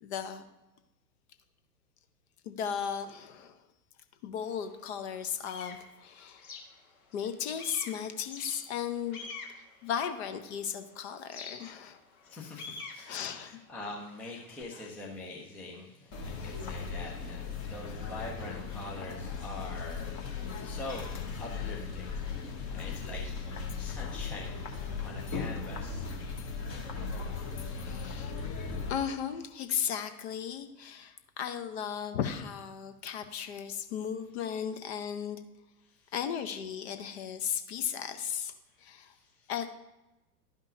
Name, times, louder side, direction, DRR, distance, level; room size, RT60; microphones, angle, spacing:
voice 1, 0.0-0.4 2.4-3.6 4.2-6.5 7.1-12.0 13.1-13.6 14.7-14.8 16.3-16.5 17.9-18.0 24.1-24.2 27.8-28.3 28.9-35.4 36.1-38.5 38.8-39.1 39.5-39.7, left 8 dB, 40° left, 8 dB, 0.8 m, -36 dB
sound 1, 4.4-4.5 5.0-7.3 7.6-10.7 11.3-14.6, left 4 dB, 60° left, 1.5 m, -46 dB
voice 2, 12.2-23.4 23.7-24.5 25.0-26.1 35.8-36.1 38.9-39.5, left 2 dB, 5° left, -3 dB, 0.4 m, -44 dB
sound 2, 16.1-28.9, left 5 dB, 25° left, 1.1 m, -37 dB
12.0 x 5.3 x 2.7 m, 1.0 s
figure-of-eight pair, 100°, 48 cm